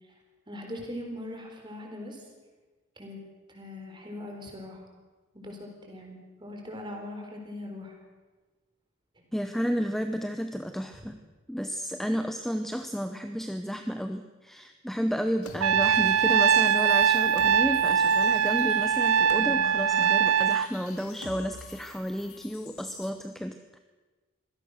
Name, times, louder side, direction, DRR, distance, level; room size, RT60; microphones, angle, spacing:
voice 1, 0.5-2.2 3.0-3.2 3.5-4.8 5.3-8.0, left 1 dB, 20° right, 2 dB, 4.2 m, -40 dB
voice 2, 9.3-11.2 11.5-23.8, equal, ahead, 7 dB, 0.7 m, -32 dB
sound 1, 15.4-23.1, left 3 dB, 85° left, 2.4 m, -46 dB
Trumpet, 15.6-20.7, right 7 dB, 80° right, 0.6 m, -22 dB
24.5 x 17.0 x 6.5 m, 1.3 s
head